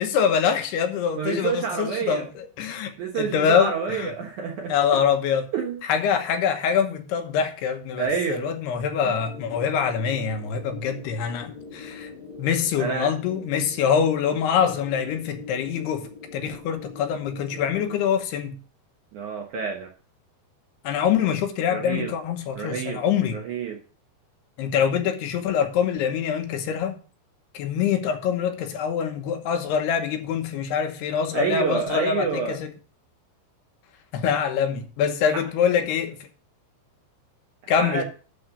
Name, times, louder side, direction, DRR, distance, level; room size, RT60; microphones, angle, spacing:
voice 1, 0.0-4.1 4.7-5.5 5.8-12.1 12.4-18.6 20.8-23.4 24.6-27.0 27.5-32.7 34.1-36.2 37.7-38.0, left 7 dB, 80° left, 3.0 m, -24 dB
voice 2, 1.2-2.3 3.0-4.7 5.5-5.8 8.0-8.5 9.0-9.1 12.8-13.1 19.1-19.9 21.7-22.1 22.6-23.0 23.3-23.8 31.3-32.6 35.3-35.4 37.6-38.0, right 6 dB, 70° right, 1.9 m, -28 dB
sound 1, 9.1-18.0, left 4 dB, 40° left, 2.1 m, -42 dB
12.0 x 4.2 x 6.9 m
omnidirectional pair, 4.8 m